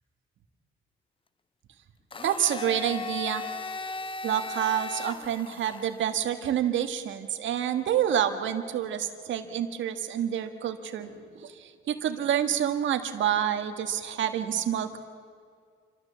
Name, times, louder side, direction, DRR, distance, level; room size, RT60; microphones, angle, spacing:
Domestic sounds home sounds, 2.1-6.1, left 3 dB, 25° left, 0.7 m, -37 dB
voice 1, 2.2-3.4 4.2-15.0, right 10 dB, 70° right, 7 dB, 1.7 m, -28 dB
28.5 x 13.0 x 7.2 m, 2.1 s
cardioid pair, 90°, 20 cm